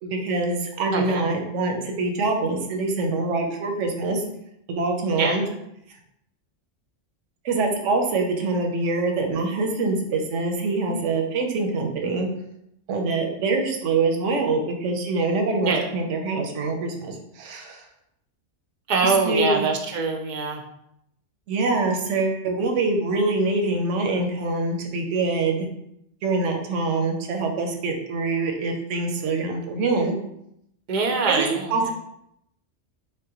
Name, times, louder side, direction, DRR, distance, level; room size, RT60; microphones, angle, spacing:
voice 1, 0.0-4.2 4.7-5.4 7.4-12.3 12.9-17.8 19.0-19.7 21.5-25.7 26.2-30.1 31.4-31.9, right 3 dB, 90° right, 3 dB, 1.0 m, -24 dB
voice 2, 0.9-1.3 5.1-5.4 15.6-15.9 18.9-20.6 30.9-31.9, right 4 dB, 55° right, 3 dB, 0.5 m, -24 dB
3.6 x 3.2 x 2.9 m, 0.78 s
omnidirectional pair, 1.2 m